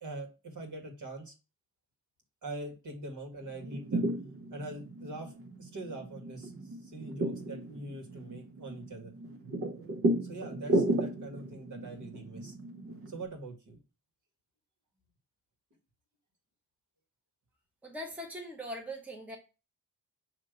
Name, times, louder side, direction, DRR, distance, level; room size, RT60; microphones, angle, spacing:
voice 1, 0.0-1.3 2.4-4.0 4.5-9.1 10.2-12.5 13.1-13.8, right 2 dB, 60° right, 2 dB, 1.9 m, -43 dB
sound 1, 3.4-13.2, right 1 dB, 40° right, 0.7 m, -34 dB
voice 2, 17.8-19.4, equal, 5° right, 0 dB, 0.9 m, -41 dB
6.5 x 3.0 x 5.1 m, 0.31 s
wide cardioid pair, 175°, 35 cm